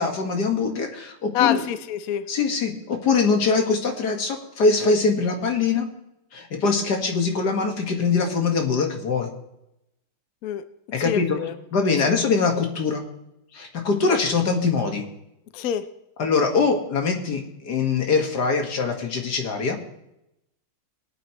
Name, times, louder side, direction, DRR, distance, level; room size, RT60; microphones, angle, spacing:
voice 1, 0.0-1.6 2.3-5.9 6.3-9.3 10.9-11.4 11.7-13.0 13.5-15.0 16.2-19.8, left 4 dB, 50° left, 2 dB, 2.1 m, -23 dB
voice 2, 1.3-2.2 10.4-10.6 11.0-11.5 12.1-12.2 15.5-15.9, left 10 dB, 75° left, 11 dB, 0.8 m, -26 dB
22.5 x 9.1 x 3.1 m, 0.85 s
omnidirectional pair, 2.3 m